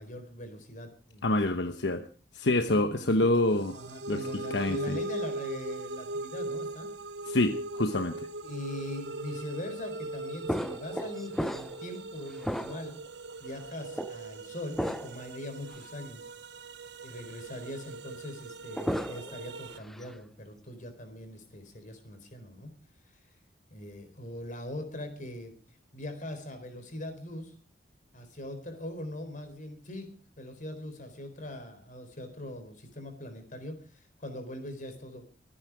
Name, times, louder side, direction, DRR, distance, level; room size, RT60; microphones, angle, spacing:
voice 1, 0.0-1.4 2.7-6.9 8.4-13.0 13.4-16.3 17.0-22.7 23.7-25.5 25.9-27.5 28.1-30.1 30.4-35.2, left 1 dB, 45° left, 7 dB, 4.2 m, -41 dB
voice 2, 1.2-2.0 2.3-3.7 4.1-5.0 7.3-8.1, left 2 dB, 75° left, 8 dB, 1.1 m, -27 dB
sound 1, 3.5-19.8, right 2 dB, 65° right, 0.9 m, -40 dB
sound 2, 10.5-12.0 12.4-13.1 14.0-14.1 14.8-15.2 15.7-15.8 18.5-19.4 19.8-20.2, equal, ahead, 0.7 m, -34 dB
24.5 x 9.9 x 4.8 m, 0.40 s
head